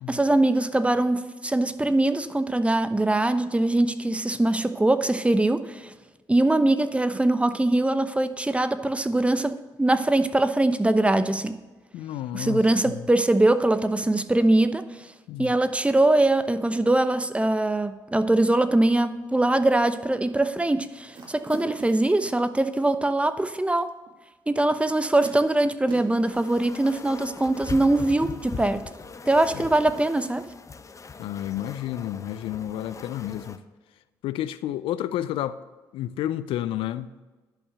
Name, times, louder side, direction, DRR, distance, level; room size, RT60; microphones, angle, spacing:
voice 1, 0.1-5.9 6.3-11.6 12.3-14.9 15.4-23.9 24.5-28.8 29.3-30.5, right 2 dB, 15° right, 0.8 m, -22 dB
voice 2, 11.9-13.0 15.3-15.5 29.5-29.7 31.2-33.6 34.2-35.6 35.9-37.1, left 12 dB, 75° left, 0.5 m, -31 dB
sound 1, 21.1-22.2 24.1-24.2 25.2-26.3, right 3 dB, 60° right, 2.1 m, -41 dB
sound 2, 26.3-33.6, left 5 dB, 35° left, 0.8 m, -40 dB
11.0 x 5.6 x 6.8 m
hypercardioid pair, 55°, 9 cm